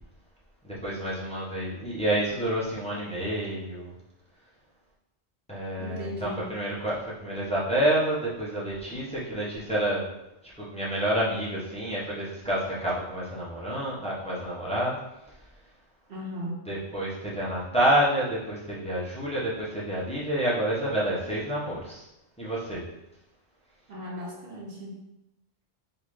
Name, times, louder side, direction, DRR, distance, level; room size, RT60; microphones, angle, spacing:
voice 1, 0.6-3.9 5.5-10.0 10.6-15.0 16.7-22.0 22.4-22.8, right 1 dB, 5° left, -8 dB, 1.0 m, -28 dB
voice 2, 5.8-6.5 16.1-16.7 23.9-25.0, equal, 65° right, -2 dB, 1.2 m, -37 dB
4.0 x 2.7 x 4.9 m, 0.92 s
omnidirectional pair, 1.2 m